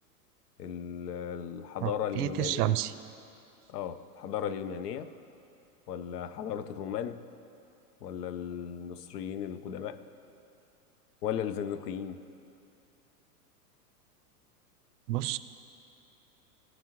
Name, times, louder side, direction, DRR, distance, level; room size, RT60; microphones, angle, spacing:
voice 1, 0.6-2.8 3.7-5.1 5.9-7.2 8.0-10.0 11.2-12.2, left 8 dB, 75° left, 12 dB, 0.7 m, -36 dB
voice 2, 1.8-2.9 15.1-15.4, right 14 dB, 70° right, 13 dB, 0.6 m, -29 dB
16.0 x 5.7 x 3.0 m, 2.7 s
hypercardioid pair, 120°, 47 cm